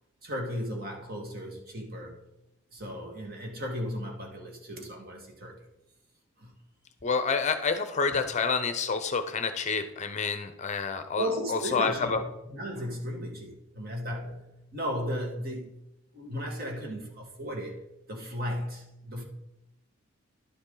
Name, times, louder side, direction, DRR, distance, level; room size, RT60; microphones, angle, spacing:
voice 1, 0.2-2.2 2.7-5.6 6.4-6.6 8.1-8.2 11.2-15.8 16.1-17.8 18.1-19.2, equal, 45° right, 1.8 m, -35 dB
voice 2, 7.0-12.2, left 5 dB, 35° left, 0.6 m, -28 dB
11.0 x 6.9 x 3.9 m
head